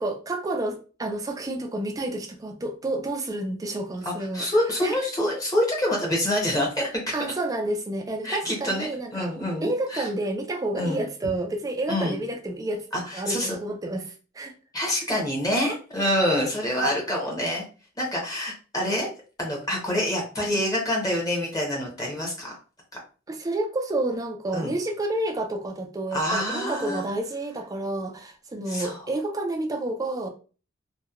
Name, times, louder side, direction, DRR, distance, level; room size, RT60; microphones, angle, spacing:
voice 1, 0.0-4.5 4.8-5.0 7.1-9.3 9.6-12.9 13.1-14.6 16.8-16.9 23.3-30.3, right 2 dB, 15° right, 0.3 m, -30 dB
voice 2, 4.0-7.1 8.2-10.1 10.7-11.0 11.9-12.2 12.9-13.6 14.7-17.6 18.0-19.1 19.4-22.6 24.5-24.7 26.1-27.0 28.7-29.0, left 1 dB, 15° left, 0.8 m, -26 dB
2.9 x 2.1 x 2.3 m
head